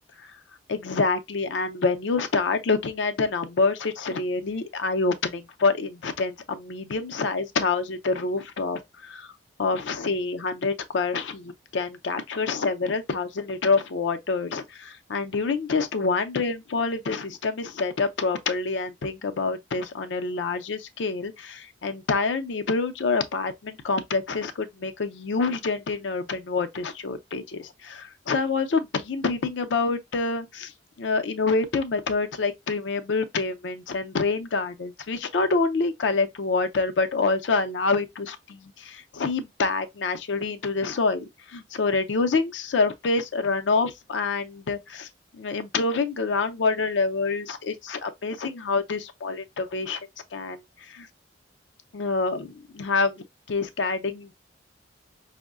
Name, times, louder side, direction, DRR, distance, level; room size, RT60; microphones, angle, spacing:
voice 1, 0.7-9.3 9.6-30.7 31.0-45.1 45.3-50.0 50.3-50.6 50.9-51.1 51.9-54.3, left 4 dB, 75° left, 0.5 m, -27 dB
5.2 x 2.1 x 2.3 m
head